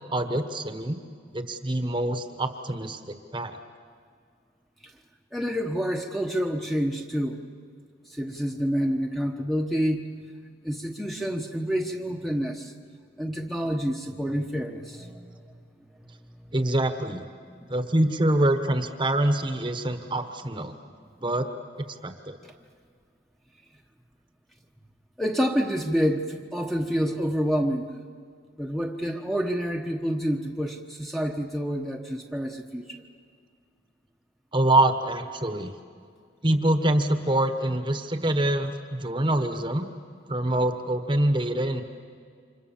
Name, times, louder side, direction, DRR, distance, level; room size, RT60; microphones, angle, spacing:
voice 1, 0.1-1.0 1.3-3.0 3.3-3.6 16.5-17.2 17.7-20.8 21.2-21.5 21.8-22.4 34.5-35.7 36.4-39.9 40.3-41.8, right 1 dB, 25° right, 8 dB, 1.3 m, -25 dB
voice 2, 5.3-7.4 8.1-10.1 10.6-12.7 13.2-15.6 16.0-16.1 17.5-17.7 25.2-27.9 28.6-33.0, equal, ahead, 2 dB, 1.2 m, -28 dB
29.5 x 26.5 x 7.2 m, 2.1 s
head